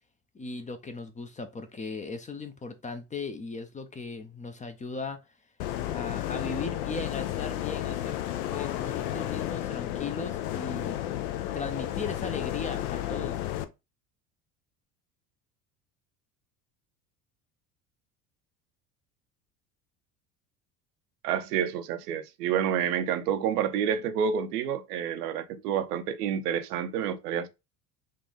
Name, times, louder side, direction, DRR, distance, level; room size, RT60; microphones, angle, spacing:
voice 1, 0.3-5.2 5.9-8.2 8.5-11.0 11.5-13.4, left 4 dB, 15° left, 0.5 m, -37 dB
sound 1, 5.6-13.6, left 13 dB, 70° left, 0.6 m, -32 dB
voice 2, 21.2-27.5, right 8 dB, 75° right, 0.7 m, -29 dB
3.7 x 2.3 x 3.8 m
hypercardioid pair, 70°, 47 cm